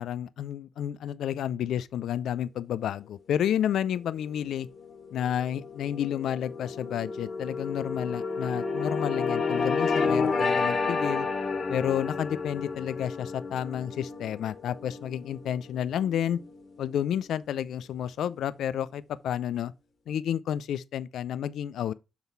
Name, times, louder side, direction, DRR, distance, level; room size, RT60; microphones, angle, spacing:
voice 1, 0.0-4.7 5.1-11.3 11.7-16.4 16.8-19.7 20.1-21.9, left 10 dB, 70° left, 0.4 m, -30 dB
sound 1, 4.3-16.9, left 4 dB, 50° left, 1.6 m, -31 dB
7.1 x 3.9 x 4.5 m
hypercardioid pair, 45°, 0 cm